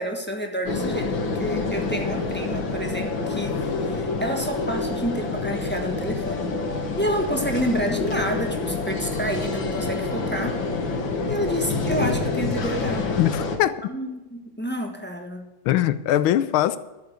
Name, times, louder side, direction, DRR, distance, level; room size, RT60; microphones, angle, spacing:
voice 1, 0.0-6.5 7.0-10.6 11.2-13.2 13.9-15.5, equal, 5° left, 0.9 m, -29 dB
sound 1, 0.6-13.6, left 3 dB, 70° left, 2.3 m, -27 dB
voice 2, 13.2-13.8 15.6-16.8, left 12 dB, 85° left, 1.5 m, -21 dB
12.5 x 7.2 x 8.2 m
omnidirectional pair, 2.2 m